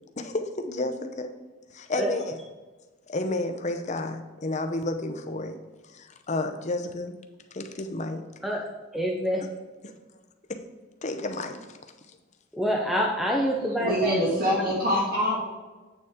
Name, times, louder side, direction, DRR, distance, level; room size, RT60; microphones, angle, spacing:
voice 1, 0.2-1.3 1.7-2.4 3.1-5.6 5.9-7.2 7.5-8.2 9.8-9.9 10.5-10.6 11.0-11.8, left 2 dB, 35° left, 6 dB, 0.7 m, -31 dB
voice 2, 8.9-9.5 12.5-14.1 15.0-15.1, equal, ahead, -1 dB, 0.6 m, -26 dB
voice 3, 13.8-15.4, equal, 45° right, -6 dB, 2.0 m, -24 dB
8.1 x 6.8 x 3.6 m, 1.2 s
head